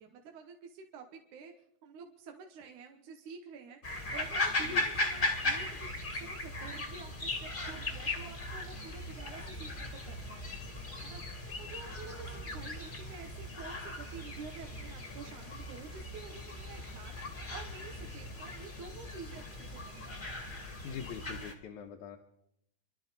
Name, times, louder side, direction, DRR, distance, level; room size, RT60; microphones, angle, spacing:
voice 1, 0.0-1.5 1.8-3.8 4.1-5.9 6.1-10.6 11.0-11.2 11.5-17.2 17.5-20.1, right 5 dB, 75° right, 3 dB, 2.7 m, -49 dB
sound 1, 3.8-21.5, left 2 dB, 20° left, 1.4 m, -38 dB
voice 2, 20.8-22.2, left 7 dB, 75° left, 0 dB, 2.4 m, -43 dB
29.0 x 12.0 x 4.0 m, 0.78 s
omnidirectional pair, 3.5 m